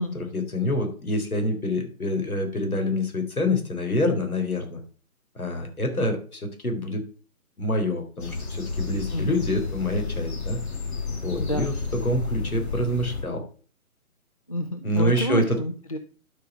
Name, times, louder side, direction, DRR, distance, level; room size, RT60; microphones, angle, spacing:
voice 1, 0.0-4.8 5.4-7.0 7.6-10.6 11.2-13.4 14.8-15.6, left 1 dB, 70° left, 4 dB, 3.7 m, -26 dB
sound 1, 8.2-13.2, left 4 dB, 45° left, 4.1 m, -31 dB
voice 2, 11.4-11.7 14.5-16.0, equal, 25° left, 7 dB, 0.5 m, -28 dB
12.0 x 5.3 x 4.4 m, 0.39 s
figure-of-eight pair, 150°, 44 cm